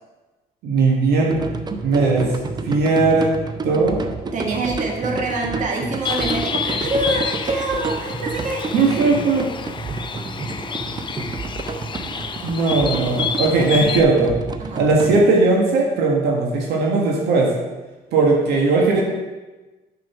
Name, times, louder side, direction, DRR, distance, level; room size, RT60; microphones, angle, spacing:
voice 1, 0.6-1.4 1.8-2.3 2.6-3.3 3.6-4.0 8.7-9.5 12.4-14.3 14.7-17.5 18.1-19.0, right 3 dB, 75° right, -1 dB, 1.5 m, -18 dB
sound 1, 1.3-15.2, right 3 dB, 25° right, 0.6 m, -30 dB
voice 2, 4.3-9.3 14.6-14.8, right 2 dB, 45° right, 0 dB, 1.6 m, -26 dB
Bird, 6.0-14.0, left 6 dB, 30° left, 0.5 m, -29 dB
6.7 x 5.2 x 5.8 m, 1.2 s
cardioid pair, 110°, 17 cm